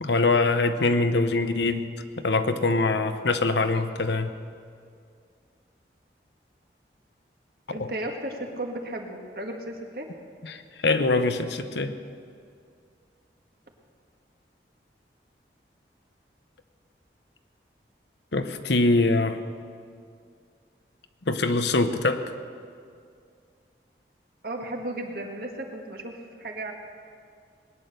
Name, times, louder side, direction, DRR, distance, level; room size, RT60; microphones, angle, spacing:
voice 1, 0.0-1.9 2.2-4.3 7.8-7.9 10.4-11.9 18.3-19.4 21.3-22.3, left 3 dB, 80° left, 9 dB, 0.9 m, -23 dB
voice 2, 7.7-10.1 24.4-26.7, right 1 dB, 55° right, 2 dB, 1.8 m, -34 dB
20.5 x 9.9 x 6.7 m, 2.3 s
head